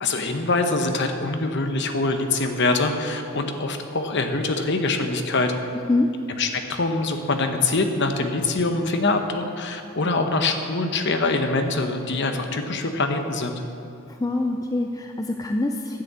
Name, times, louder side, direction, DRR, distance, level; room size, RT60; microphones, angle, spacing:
voice 1, 0.0-5.5 6.4-13.6, left 3 dB, 50° left, 6 dB, 0.9 m, -24 dB
voice 2, 14.1-16.0, left 2 dB, 15° left, 4 dB, 0.4 m, -25 dB
10.5 x 6.8 x 8.1 m, 2.6 s
head